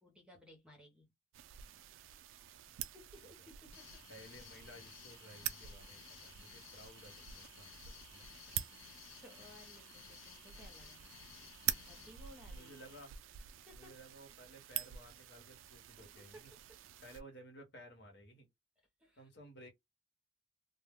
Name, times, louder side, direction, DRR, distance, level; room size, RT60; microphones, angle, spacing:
voice 1, 0.0-1.1 2.7-4.0 8.3-8.4 8.7-11.0 11.4-12.8 13.6-14.0 16.0-16.8 19.0-19.3, equal, 5° right, 0.7 m, -60 dB
sound 1, 1.3-17.2, right 12 dB, 80° right, 0.3 m, -46 dB
sound 2, 3.7-13.1, left 11 dB, 85° left, 0.3 m, -57 dB
voice 2, 4.1-7.8 8.1-8.3 12.5-13.1 13.7-16.5 17.0-18.5 19.2-19.7, right 1 dB, 60° left, 1.1 m, -56 dB
2.2 x 2.1 x 3.5 m
head